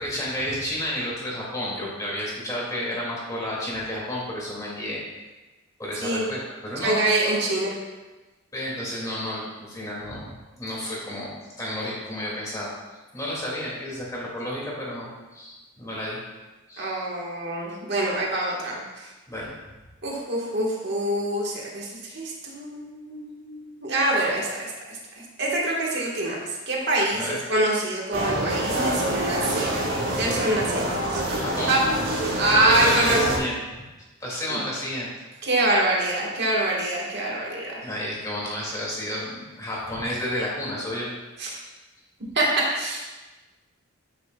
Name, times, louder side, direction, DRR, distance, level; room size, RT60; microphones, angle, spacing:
voice 1, 0.0-5.0 5.8-7.2 8.5-16.2 16.7-17.0 19.3-19.5 27.1-27.4 31.4-31.8 32.6-33.6 34.2-35.1 37.8-41.1 41.6-41.7, left 1 dB, 15° left, -5 dB, 2.3 m, -31 dB
voice 2, 6.8-7.8 16.8-19.1 20.0-31.3 31.7-31.8 32.4-33.2 34.5-34.6 35.4-37.9 41.4-41.6 42.3-43.1, right 1 dB, 50° right, -3 dB, 1.4 m, -25 dB
sound 1, 28.1-33.4, right 1 dB, 90° right, 2.3 m, -26 dB
13.0 x 6.6 x 2.3 m, 1.2 s
head